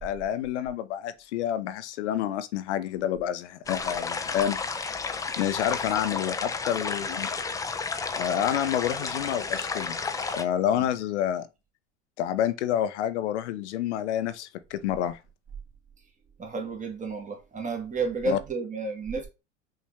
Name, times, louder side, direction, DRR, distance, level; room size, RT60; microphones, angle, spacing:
voice 1, 0.0-4.6 5.4-7.3 8.2-10.0 10.4-11.5 12.2-15.2 18.2-18.4, left 10 dB, 70° left, 0.6 m, -28 dB
sound 1, 3.7-10.4, left 4 dB, 10° left, 0.4 m, -32 dB
voice 2, 16.4-19.3, right 3 dB, 20° right, 1.5 m, -31 dB
5.5 x 2.6 x 3.2 m
hypercardioid pair, 75°, 36 cm